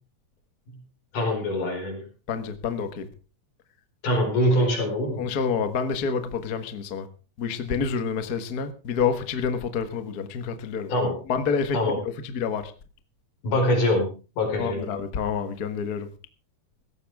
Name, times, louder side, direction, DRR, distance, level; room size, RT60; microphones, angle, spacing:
voice 1, 1.1-2.0 4.0-5.3 10.9-11.2 11.7-12.0 13.4-14.1 14.4-14.9, left 1 dB, 80° left, 6.0 m, -24 dB
voice 2, 2.3-3.1 5.2-7.1 7.4-10.9 11.3-11.8 12.2-12.7 14.6-16.1, left 6 dB, 50° left, 1.2 m, -28 dB
17.0 x 14.5 x 3.5 m
omnidirectional pair, 3.6 m